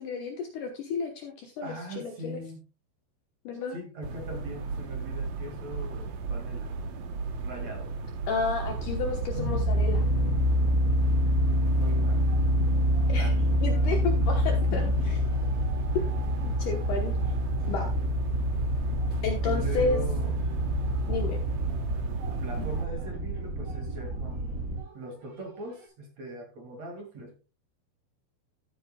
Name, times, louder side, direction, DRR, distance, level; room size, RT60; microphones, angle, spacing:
voice 1, 0.0-2.4 3.4-3.8 8.3-10.0 13.1-13.3 13.6-14.9 16.4-17.2 17.7-17.9 19.2-20.0 21.1-21.4, left 4 dB, 65° left, 4 dB, 2.2 m, -31 dB
voice 2, 1.6-2.6 3.7-6.7 7.4-7.9 11.4-12.3 13.1-13.6 14.7-14.9 15.9-16.1 19.4-20.4 22.4-24.7 24.9-27.4, right 1 dB, 45° right, 3 dB, 2.9 m, -41 dB
sound 1, 4.0-22.9, right 4 dB, 90° right, 1.6 m, -35 dB
sound 2, 8.6-24.8, equal, 25° right, 2.1 m, -27 dB
sound 3, 11.5-25.9, right 3 dB, 75° right, 6.1 m, -50 dB
14.5 x 8.7 x 2.3 m, 0.31 s
omnidirectional pair, 4.8 m